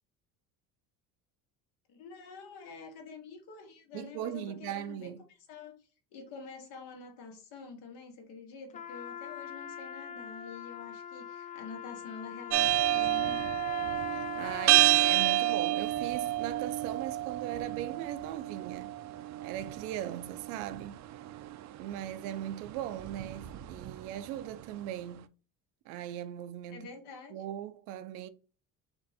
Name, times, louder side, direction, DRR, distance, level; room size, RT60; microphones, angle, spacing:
voice 1, 1.9-5.1 5.5-5.7 6.1-13.5 26.7-27.3, left 5 dB, 80° left, 1.5 m, -47 dB
voice 2, 3.9-5.2 14.1-19.0 19.4-21.0 21.8-25.3 25.9-26.9 27.3-28.3, right 11 dB, 85° right, 0.6 m, -39 dB
Trumpet, 8.7-15.7, left 9 dB, 20° left, 0.3 m, -42 dB
sound 1, 12.5-24.6, right 15 dB, 45° right, 0.4 m, -30 dB
4.4 x 2.6 x 4.1 m
supercardioid pair, 105°, 39 cm